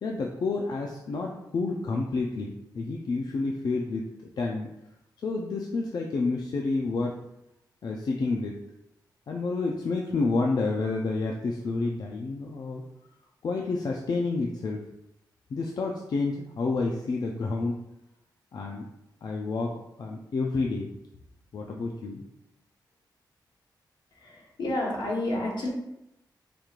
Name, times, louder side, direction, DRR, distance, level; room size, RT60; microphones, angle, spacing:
voice 1, 0.0-4.1 4.4-4.7 5.2-7.1 7.8-8.5 9.3-12.8 13.4-14.8 15.5-17.8 18.5-18.8 19.2-19.7 20.0-20.9 21.5-22.2, left 3 dB, 60° left, 0 dB, 0.4 m, -29 dB
voice 2, 24.1-25.7, left 1 dB, 80° left, -2 dB, 1.1 m, -30 dB
4.9 x 3.0 x 2.4 m, 0.86 s
wide cardioid pair, 105°, 8 cm